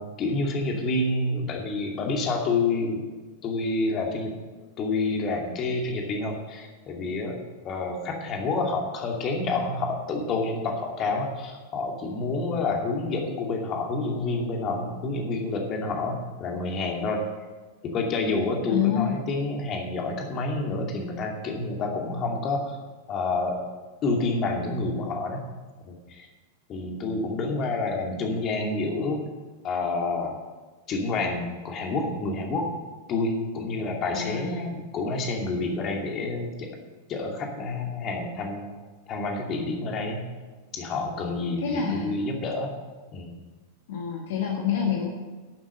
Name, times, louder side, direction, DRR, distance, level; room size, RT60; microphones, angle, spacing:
voice 1, 0.0-3.0 3.4-4.3 4.8-7.4 7.6-17.3 17.9-22.8 23.1-23.6 24.0-25.5 25.9-26.3 26.7-29.2 29.6-30.3 30.9-32.7 33.1-36.7 37.1-38.8 39.1-40.3 40.7-42.7 43.1-43.3, left 3 dB, 30° left, 2 dB, 2.4 m, -28 dB
voice 2, 18.7-19.2 34.1-34.7 41.6-42.2 43.9-45.1, left 8 dB, 55° left, 1 dB, 1.5 m, -27 dB
12.0 x 7.5 x 7.6 m, 1.3 s
figure-of-eight pair, 90°, 0 cm